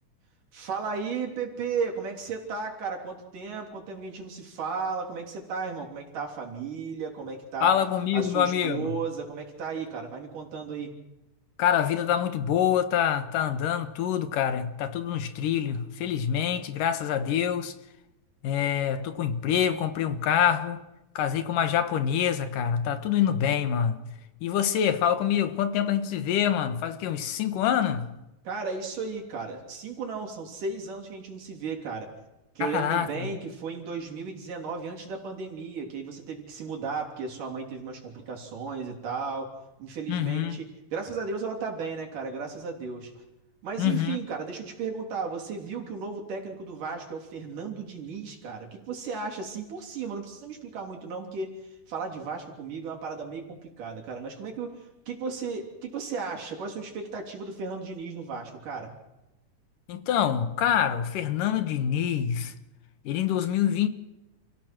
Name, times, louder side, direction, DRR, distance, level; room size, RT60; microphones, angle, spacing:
voice 1, 0.5-7.7 8.1-10.9 28.4-32.1 32.6-39.5 39.8-43.1 43.6-58.9, right 5 dB, 80° right, 4.8 m, -35 dB
voice 2, 7.6-9.0 11.6-17.7 18.4-20.8 21.2-24.0 24.4-28.1 32.6-33.3 40.1-40.6 43.8-44.2 59.9-62.5 63.0-63.9, left 9 dB, 90° left, 2.9 m, -26 dB
29.5 x 16.5 x 6.1 m
omnidirectional pair, 3.7 m